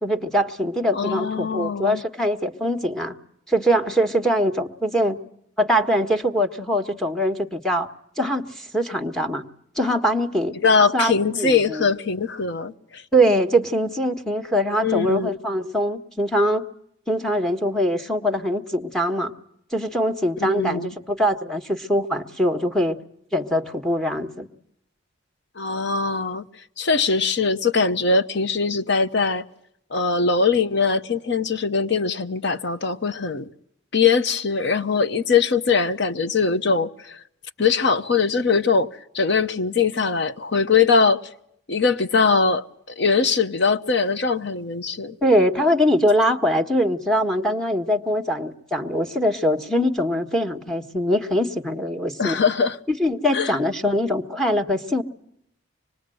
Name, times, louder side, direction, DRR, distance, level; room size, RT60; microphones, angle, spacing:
voice 1, 0.0-3.1 3.5-5.2 5.6-7.9 8.2-9.4 9.7-10.6 10.9-11.9 13.1-16.7 17.1-19.3 19.7-23.0 23.3-24.5 45.2-52.4 52.9-55.0, equal, 5° left, 1.4 m, -22 dB
voice 2, 0.9-2.0 10.6-13.0 14.8-15.4 20.4-20.9 25.6-26.4 26.8-29.4 29.9-33.5 33.9-37.2 37.6-38.9 39.1-41.2 41.7-42.7 43.0-45.2 52.2-52.8 53.3-53.5, left 5 dB, 60° left, 0.9 m, -21 dB
25.5 x 21.0 x 7.8 m
head